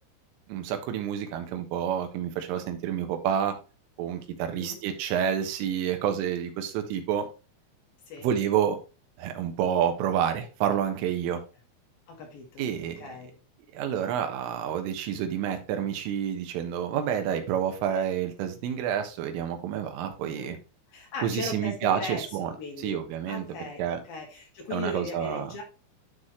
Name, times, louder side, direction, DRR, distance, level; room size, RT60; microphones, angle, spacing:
voice 1, 0.5-3.5 4.0-7.3 8.2-8.8 9.2-11.4 12.6-13.0 13.7-20.6 21.2-22.5 22.8-23.4 23.8-24.0 24.7-25.5, right 9 dB, 90° right, 6 dB, 3.8 m, -29 dB
voice 2, 4.5-4.8 8.1-8.3 12.1-12.7 13.0-13.4 20.3-20.6 20.9-22.3 22.6-23.0 23.3-25.6, left 3 dB, 55° left, 0 dB, 3.6 m, -38 dB
11.5 x 4.1 x 3.2 m, 0.32 s
omnidirectional pair, 5.6 m